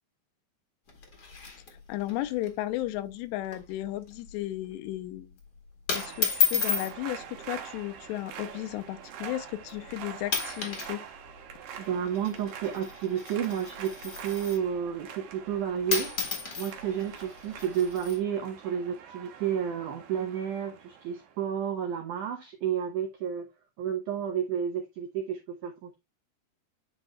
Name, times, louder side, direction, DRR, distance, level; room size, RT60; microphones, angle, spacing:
sound 1, 0.9-2.1 2.4-2.5 2.8-3.1 3.4-3.7 4.1-4.4 5.1-5.4 5.9-6.9 7.9-8.2 8.9-9.0 9.7-9.9 10.2-10.9 11.2-14.7 15.6-15.7 15.9-18.2, left 6 dB, 40° left, 1.4 m, -32 dB
voice 1, 1.9-5.3 5.9-11.0, left 15 dB, 85° left, 2.8 m, -34 dB
sound 2, 5.9-21.4, right 8 dB, 70° right, 2.3 m, -45 dB
voice 2, 11.8-16.1 16.6-23.5 23.8-26.0, right 8 dB, 90° right, 1.7 m, -31 dB
10.0 x 5.2 x 2.2 m
omnidirectional pair, 4.9 m